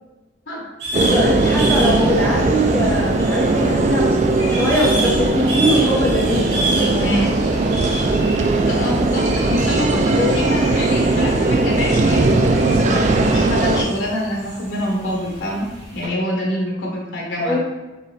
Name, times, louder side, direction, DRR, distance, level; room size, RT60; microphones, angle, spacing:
sound 1, 0.8-16.1, right 1 dB, 65° right, 1.1 m, -30 dB
sound 2, 0.9-13.9, right 2 dB, 40° right, 0.3 m, -18 dB
voice 1, 1.0-7.4 9.5-9.6 10.1-10.3 17.4-17.6, equal, 10° left, -5 dB, 0.9 m, -22 dB
voice 2, 7.0-7.3 8.3-15.7 15.9-17.6, equal, 75° left, -2 dB, 1.0 m, -25 dB
4.8 x 2.9 x 3.2 m, 1.1 s
head